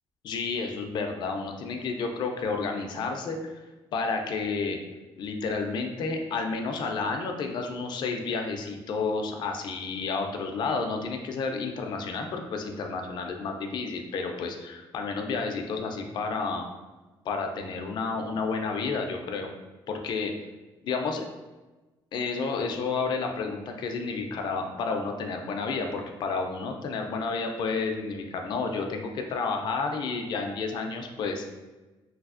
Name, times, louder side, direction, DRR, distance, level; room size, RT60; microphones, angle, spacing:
voice 1, 0.2-3.5 3.9-4.8 5.2-16.7 17.3-19.5 19.9-20.3 20.8-21.2 22.1-31.4, left 4 dB, 50° left, 4 dB, 0.4 m, -31 dB
3.2 x 2.6 x 2.4 m, 1.2 s
cardioid pair, 175°, 10 cm